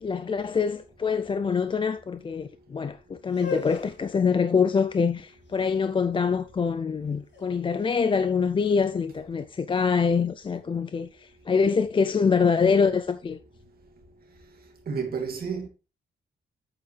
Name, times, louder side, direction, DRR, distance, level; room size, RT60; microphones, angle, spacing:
voice 1, 0.0-13.4, left 5 dB, 25° left, 0.4 m, -25 dB
sound 1, 3.2-9.2, left 7 dB, 60° left, 2.2 m, -43 dB
voice 2, 14.9-15.7, right 5 dB, 50° right, 2.4 m, -30 dB
8.3 x 7.9 x 3.2 m
wide cardioid pair, 170°, 20 cm